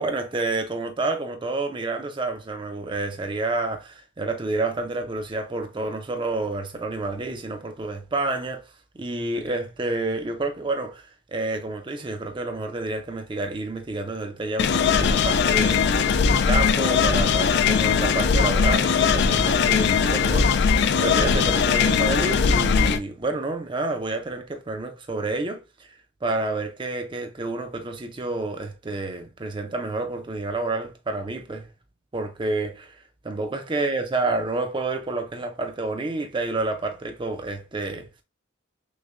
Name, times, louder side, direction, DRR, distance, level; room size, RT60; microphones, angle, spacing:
voice 1, 0.0-8.6 9.0-15.8 16.3-20.7 21.0-25.6 26.2-31.7 32.1-33.0 33.2-38.1, right 2 dB, 25° right, 0.4 m, -29 dB
sound 1, 14.6-23.0, left 6 dB, 55° left, 0.3 m, -20 dB
6.2 x 2.1 x 2.4 m
head